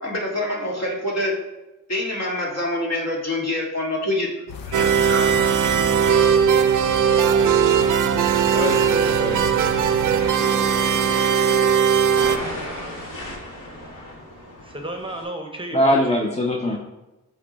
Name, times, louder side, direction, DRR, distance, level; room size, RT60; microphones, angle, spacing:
voice 1, 0.0-1.4 1.9-4.3 4.6-5.5, left 1 dB, 50° left, -2 dB, 1.8 m, -26 dB
sound 1, 4.5-10.3, left 5 dB, 85° left, 0.7 m, -35 dB
sound 2, 4.7-12.4, right 7 dB, 65° right, 0.5 m, -19 dB
voice 2, 8.5-9.4 15.7-16.8, left 1 dB, 20° left, -1 dB, 0.7 m, -22 dB
sound 3, 9.6-15.2, left 1 dB, 70° left, 2.2 m, -35 dB
voice 3, 12.5-13.2 13.6-13.9 14.6-16.3 16.7-16.8, right 1 dB, 15° right, 3 dB, 0.8 m, -35 dB
8.1 x 3.1 x 4.1 m, 1.0 s
cardioid pair, 85°, 33 cm